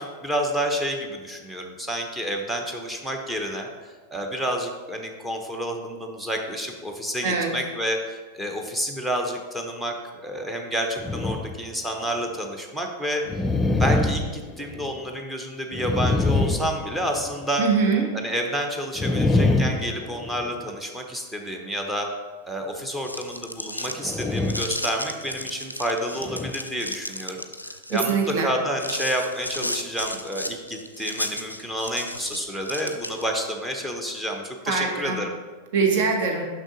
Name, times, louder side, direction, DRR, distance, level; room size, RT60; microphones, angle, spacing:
voice 1, 0.0-9.9 10.2-13.2 13.7-17.6 18.1-22.1 22.4-35.3, equal, 5° right, 2 dB, 0.8 m, -29 dB
sound 1, 11.0-11.7 12.2-12.3 13.3-15.1 15.7-17.5 19.0-20.7 24.0-24.8 25.3-25.4 26.2-26.5, left 2 dB, 15° left, 0.4 m, -25 dB
voice 2, 17.6-18.0 27.9-28.5 34.7-35.2 35.7-36.5, right 5 dB, 50° right, 3 dB, 1.1 m, -23 dB
sound 2, 22.8-33.4, left 1 dB, 85° left, 0.4 m, -34 dB
6.3 x 5.8 x 3.9 m, 1.4 s
figure-of-eight pair, 90°, 0 cm